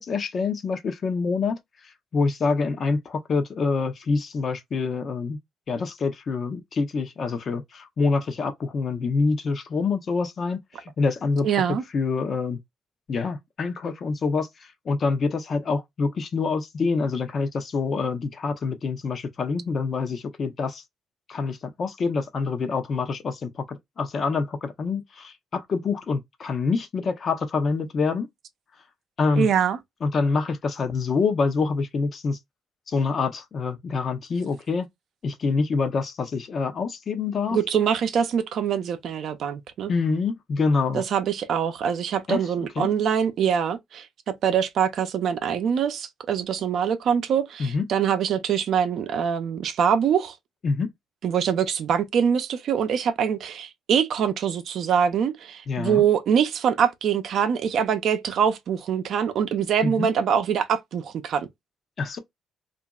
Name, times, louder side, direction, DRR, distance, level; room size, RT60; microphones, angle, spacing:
voice 1, 0.0-1.5 2.1-5.4 5.7-10.6 11.0-12.6 13.1-14.5 14.9-20.8 21.3-28.3 29.2-29.5 30.0-32.4 32.9-34.9 35.2-37.6 39.9-41.0 42.3-42.4 42.8-42.9 47.6-47.8 50.6-50.9 55.7-56.0 59.8-60.1 62.0-62.2, left 4 dB, 50° left, 0.7 m, -26 dB
voice 2, 11.4-11.8 29.4-29.8 37.5-39.9 40.9-50.4 51.2-61.5, right 8 dB, 70° right, 0.5 m, -24 dB
2.9 x 2.5 x 2.3 m
cardioid pair, 90°, 0 cm